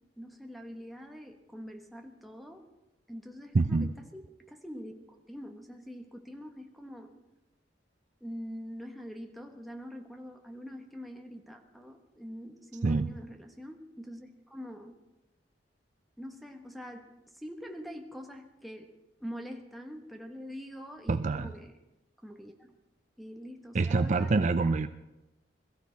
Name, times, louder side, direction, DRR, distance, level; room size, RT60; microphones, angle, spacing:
voice 1, 0.2-2.6 3.1-7.1 8.2-14.9 16.2-18.9 19.2-21.7 22.2-22.8 23.2-24.8, equal, ahead, 2 dB, 1.4 m, -44 dB
voice 2, 3.5-3.9 12.8-13.2 21.1-21.5 23.7-24.9, right 3 dB, 40° right, 11 dB, 0.4 m, -26 dB
22.0 x 14.5 x 4.1 m, 0.99 s
head